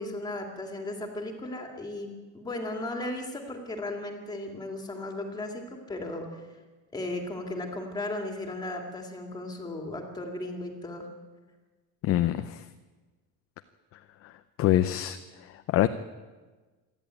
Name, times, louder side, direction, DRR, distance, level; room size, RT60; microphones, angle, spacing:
voice 1, 0.0-2.1 2.3-6.4 6.9-11.1, left 2 dB, 10° left, 3 dB, 2.4 m, -36 dB
voice 2, 12.0-12.6 14.2-14.3 14.6-15.9, left 13 dB, 40° left, 9 dB, 0.6 m, -25 dB
27.5 x 11.0 x 9.0 m, 1.3 s
cardioid pair, 180°, 36 cm